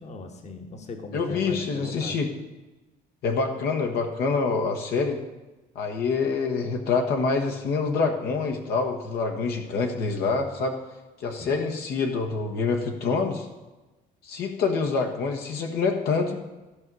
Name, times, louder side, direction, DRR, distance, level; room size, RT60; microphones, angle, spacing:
voice 1, 0.0-2.2 11.4-11.5, left 3 dB, 40° left, 4 dB, 1.4 m, -39 dB
voice 2, 1.1-2.3 3.2-5.2 5.7-10.8 11.2-13.5 14.2-16.4, left 4 dB, 70° left, 3 dB, 1.3 m, -26 dB
14.0 x 5.4 x 6.2 m, 1.1 s
cardioid pair, 110°, 17 cm